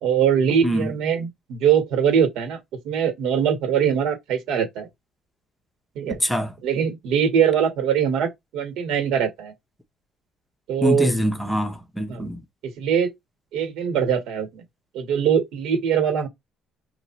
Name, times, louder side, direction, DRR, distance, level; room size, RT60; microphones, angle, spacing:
voice 1, 0.0-2.6 2.8-4.9 6.0-6.2 6.6-9.5 10.7-11.1 12.1-12.3 12.6-13.1 13.5-14.6 14.9-16.3, right 8 dB, 70° right, 1.7 m, -22 dB
voice 2, 6.1-6.5 10.8-12.4, equal, 5° left, 0.7 m, -24 dB
5.3 x 2.7 x 3.0 m
cardioid pair, 175°, 0 cm